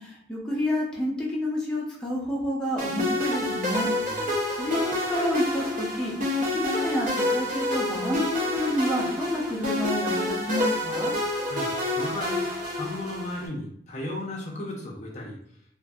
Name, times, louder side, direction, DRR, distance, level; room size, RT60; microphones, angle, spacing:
voice 1, 0.0-3.9 4.6-6.1 6.5-11.1, equal, 5° left, -5 dB, 0.7 m, -29 dB
sound 1, 2.8-13.5, left 1 dB, 45° right, 0.7 m, -28 dB
voice 2, 4.0-4.3 11.5-12.4 12.7-15.4, left 1 dB, 40° left, -2 dB, 0.5 m, -35 dB
2.5 x 2.5 x 2.3 m, 0.65 s
head